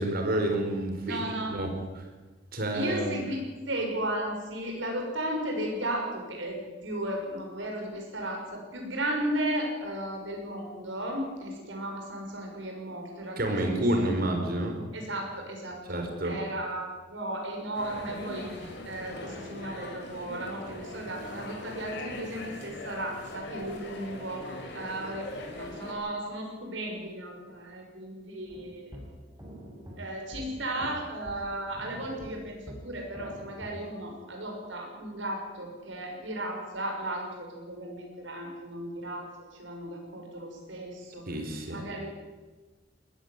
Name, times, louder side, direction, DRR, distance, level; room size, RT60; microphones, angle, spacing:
voice 1, 0.0-1.7 2.5-3.2 13.4-14.7 15.9-16.3 41.3-41.8, right 1 dB, 55° right, 4 dB, 4.5 m, -29 dB
voice 2, 1.0-1.6 2.7-3.4 3.7-14.1 14.9-25.3 25.6-29.0 30.0-39.3 39.6-41.3 41.7-42.1, right 1 dB, 75° right, 1 dB, 6.4 m, -35 dB
sound 1, 17.7-25.9, left 2 dB, 65° left, 4.9 m, -41 dB
sound 2, 28.5-33.8, equal, 15° right, 5.7 m, -46 dB
19.5 x 14.5 x 9.7 m, 1.3 s
head